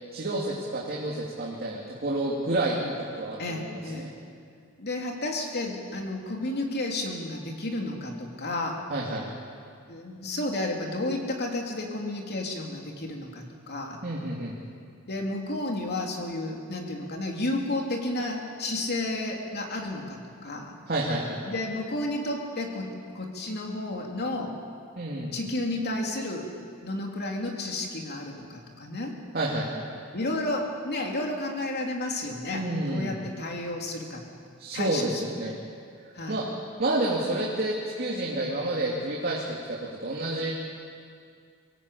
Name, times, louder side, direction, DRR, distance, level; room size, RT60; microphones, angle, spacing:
voice 1, 0.1-4.1 8.9-9.3 14.0-14.5 20.9-21.4 25.0-25.3 29.3-29.8 32.5-33.1 34.6-35.6 36.3-36.4 36.8-39.4 39.7-40.5, right 1 dB, 45° right, -4 dB, 2.8 m, -29 dB
voice 2, 3.4-4.1 4.8-8.8 9.9-14.0 15.1-20.7 21.4-24.5 25.3-26.5 26.8-29.1 30.1-34.2 34.7-35.3 36.1-36.4, left 2 dB, 50° left, 1 dB, 3.2 m, -32 dB
24.5 x 17.0 x 8.5 m, 2.3 s
head